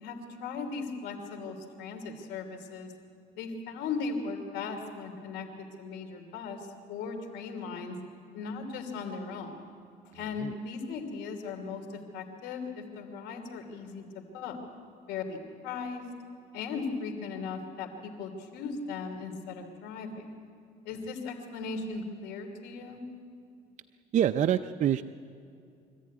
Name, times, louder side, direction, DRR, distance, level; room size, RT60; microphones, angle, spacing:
voice 1, 0.0-2.9 3.4-8.0 8.3-9.5 10.1-14.6 15.1-16.1 16.5-20.3 20.8-23.0, left 4 dB, 85° left, 5 dB, 3.0 m, -38 dB
voice 2, 10.1-10.5 24.1-25.0, right 10 dB, 45° right, 9 dB, 0.5 m, -26 dB
24.0 x 14.5 x 9.4 m, 2.5 s
cardioid pair, 110°, 17 cm